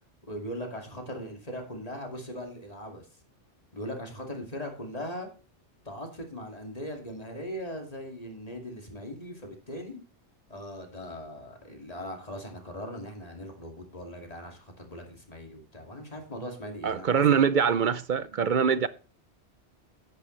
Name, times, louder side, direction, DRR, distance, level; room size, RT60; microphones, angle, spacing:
voice 1, 0.3-3.1 3.7-5.3 5.9-10.0 10.5-17.4, equal, 30° left, 2.5 m, -39 dB
voice 2, 16.8-18.9, right 7 dB, 55° right, 0.6 m, -23 dB
10.5 x 9.2 x 3.2 m
omnidirectional pair, 1.2 m